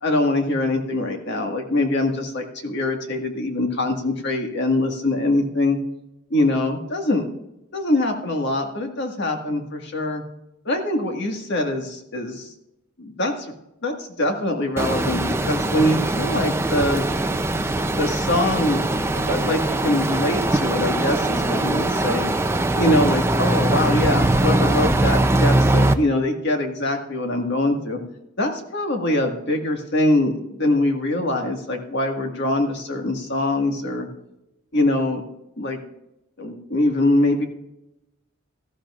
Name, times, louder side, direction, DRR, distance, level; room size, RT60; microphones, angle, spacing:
voice 1, 0.0-5.8 6.3-7.3 7.7-10.2 10.7-12.5 13.0-13.5 13.8-17.1 17.9-18.8 19.1-22.2 22.8-28.0 28.4-34.1 34.7-35.2 35.6-35.8 36.4-37.5, left 1 dB, 55° left, 3 dB, 1.8 m, -23 dB
sound 1, 14.8-25.9, right 2 dB, 10° right, 0.5 m, -21 dB
18.0 x 13.5 x 2.5 m, 0.88 s
head